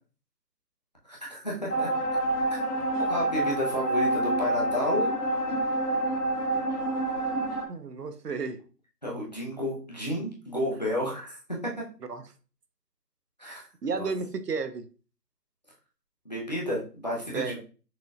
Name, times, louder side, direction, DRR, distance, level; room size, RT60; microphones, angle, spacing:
voice 1, 1.1-1.9 2.5-2.6 3.1-5.1 9.0-11.4 11.8-11.9 13.4-13.6 13.9-14.1 16.2-17.6, equal, 25° left, 0.9 m, -31 dB
sound 1, 1.7-7.6, right 1 dB, 65° left, 1.2 m, -27 dB
voice 2, 7.7-8.6 12.1-12.2 13.8-14.9 17.3-17.6, right 4 dB, 70° right, 0.8 m, -32 dB
6.1 x 3.0 x 2.5 m
hypercardioid pair, 180°, 49 cm